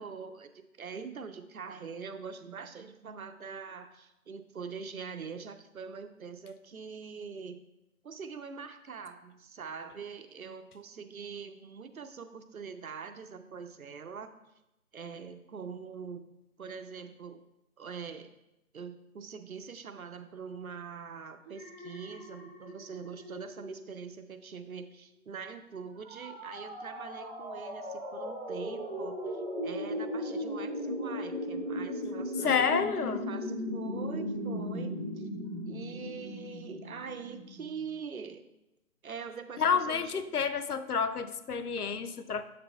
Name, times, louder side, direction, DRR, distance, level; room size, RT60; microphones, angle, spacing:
voice 1, 0.0-7.6 8.0-14.3 14.9-16.3 16.6-17.4 17.8-18.3 18.7-32.7 33.0-35.3 35.6-38.5 39.0-40.2, right 6 dB, 70° right, 8 dB, 0.7 m, -43 dB
Alarm, 21.4-24.8 25.1-25.5, equal, 50° right, 2.0 m, -49 dB
sound 1, 26.0-37.8, equal, 35° right, 2.3 m, -37 dB
voice 2, 32.4-33.3 39.6-42.4, left 6 dB, 85° left, 10 dB, 0.6 m, -29 dB
7.8 x 6.7 x 2.3 m, 0.90 s
figure-of-eight pair, 155°, 44 cm